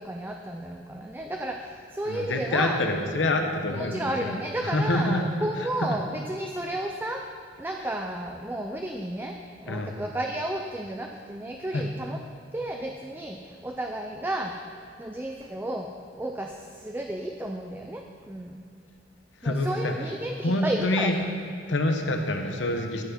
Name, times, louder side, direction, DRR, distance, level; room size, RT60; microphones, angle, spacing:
voice 1, 0.0-2.8 3.6-7.3 7.6-12.2 12.5-14.6 15.0-18.6 19.4-21.1, right 1 dB, 10° right, 2 dB, 0.4 m, -32 dB
voice 2, 2.1-4.4 4.6-5.2 5.9-6.0 9.7-10.0 11.7-11.8 19.4-19.9 20.4-21.1 21.7-23.0, left 2 dB, 90° left, 4 dB, 1.0 m, -26 dB
13.5 x 6.0 x 5.6 m, 2.3 s
head